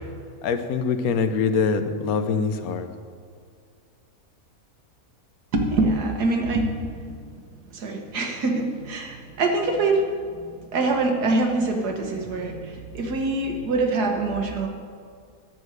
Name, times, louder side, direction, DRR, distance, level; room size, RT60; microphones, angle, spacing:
voice 1, 0.4-2.9, left 5 dB, 70° left, 9 dB, 1.2 m, -24 dB
voice 2, 5.5-14.7, right 2 dB, 90° right, 3 dB, 1.8 m, -25 dB
10.5 x 6.4 x 7.9 m, 2.2 s
omnidirectional pair, 1.6 m